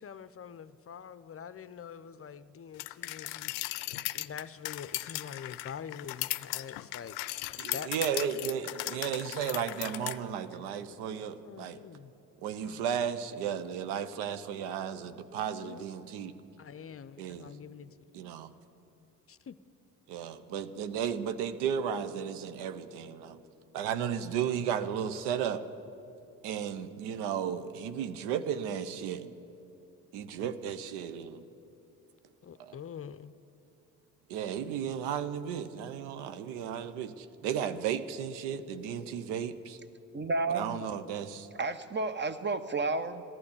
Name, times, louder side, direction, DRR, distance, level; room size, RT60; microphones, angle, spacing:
voice 1, 0.0-3.8 4.1-7.2 7.5-8.2 9.8-10.0 10.5-10.7 11.2-12.1 12.6-12.8 15.6-15.9 16.6-18.0 19.3-19.6 30.4-30.5 32.4-33.3, left 7 dB, 35° left, 14 dB, 0.6 m, -45 dB
sound 1, 2.8-10.2, left 19 dB, 85° left, 0.5 m, -37 dB
voice 2, 7.6-11.8 12.4-16.3 17.2-17.6 18.1-18.5 20.1-23.4 23.7-25.6 26.4-29.3 30.1-31.4 32.6-32.8 34.3-39.8 40.5-41.5, right 8 dB, 80° right, 12 dB, 0.8 m, -34 dB
voice 3, 40.1-40.8 41.6-43.2, right 3 dB, 25° right, 12 dB, 1.0 m, -31 dB
14.0 x 12.0 x 8.4 m, 2.8 s
hypercardioid pair, 55°, 39 cm